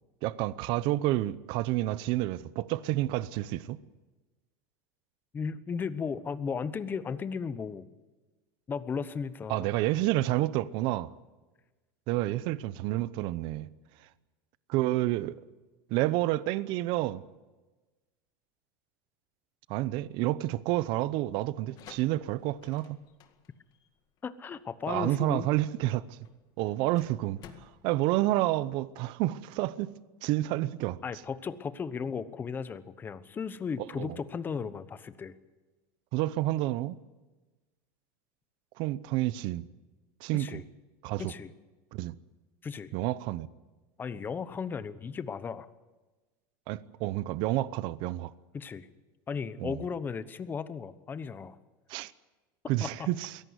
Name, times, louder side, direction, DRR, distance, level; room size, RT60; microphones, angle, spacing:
voice 1, 0.2-3.8 9.5-11.1 12.1-13.7 14.7-15.4 15.9-17.2 19.7-23.0 24.9-26.2 26.6-29.9 30.2-31.0 34.0-34.2 36.1-37.0 38.8-39.6 40.2-40.6 41.0-41.3 41.9-42.1 42.9-43.5 46.7-48.3 49.6-49.8 51.9-52.1 52.7-53.3, right 16 dB, 55° right, 0.8 m, -29 dB
voice 2, 5.3-7.8 8.7-9.7 24.2-25.5 31.0-35.3 40.3-40.6 41.2-41.5 42.6-42.9 44.0-45.7 48.5-48.9 49.3-51.6 52.8-53.1, left 6 dB, 20° left, 1.0 m, -35 dB
Metal push door open, 21.5-29.1, left 9 dB, 40° left, 1.9 m, -56 dB
23.0 x 17.5 x 8.2 m
supercardioid pair, 140°, 10 cm